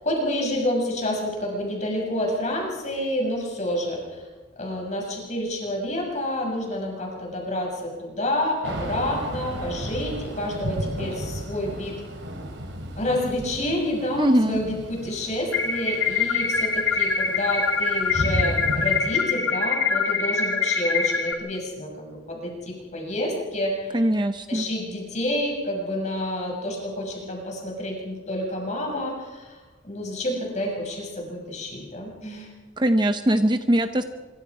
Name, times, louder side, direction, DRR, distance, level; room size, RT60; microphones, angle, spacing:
voice 1, 0.0-4.2 4.6-12.0 13.0-24.1 24.5-29.6 29.8-32.5, left 1 dB, 35° left, 0 dB, 6.6 m, -29 dB
Thunder / Rain, 8.6-19.0, right 1 dB, 70° right, 3.9 m, -34 dB
voice 2, 14.2-14.6 23.9-24.7 32.8-34.0, right 1 dB, 25° right, 8 dB, 0.8 m, -21 dB
sound 1, 15.5-21.3, left 5 dB, 85° left, 2.2 m, -24 dB
25.5 x 23.5 x 4.9 m, 1.3 s
head